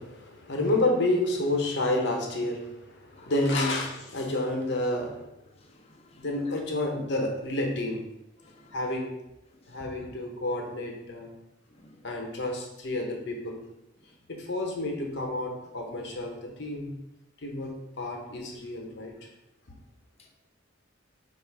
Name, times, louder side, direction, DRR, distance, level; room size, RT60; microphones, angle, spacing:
voice 1, 0.0-5.3 6.2-8.1 8.7-9.1 9.7-11.3 12.0-13.6 14.3-16.9 17.4-19.1, left 1 dB, 60° left, 1 dB, 0.8 m, -30 dB
voice 2, 3.2-3.8 5.6-6.3 8.4-8.7 11.8-12.0, left 4 dB, 30° left, 1 dB, 0.5 m, -40 dB
4.5 x 2.4 x 4.5 m, 0.91 s
head